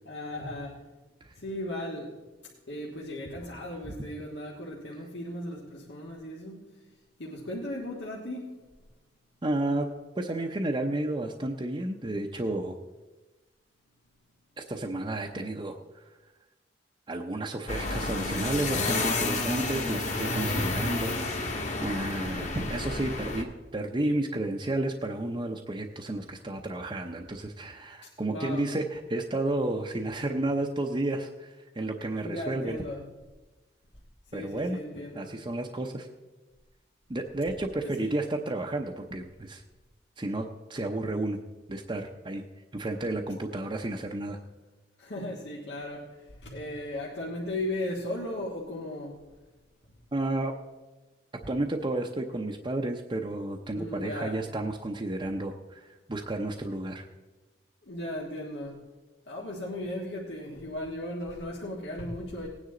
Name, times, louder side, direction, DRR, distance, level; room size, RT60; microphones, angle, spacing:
voice 1, 0.0-0.8 1.3-2.2 2.7-6.8 7.2-8.6 28.3-28.7 32.2-33.1 34.3-35.3 37.8-38.2 45.0-49.3 53.7-54.4 57.8-58.8 59.3-62.5, left 1 dB, 80° left, -4 dB, 1.6 m, -36 dB
voice 2, 9.4-9.9 10.2-12.8 14.6-16.1 17.1-21.6 21.8-32.8 34.3-34.8 35.1-36.1 37.1-39.6 40.2-41.4 41.7-42.4 42.7-44.4 50.1-50.5 51.4-57.1, right 2 dB, 25° right, 1 dB, 0.7 m, -32 dB
sound 1, 17.7-23.4, left 2 dB, 40° left, 1.4 m, -30 dB
18.5 x 9.6 x 3.8 m, 1.2 s
head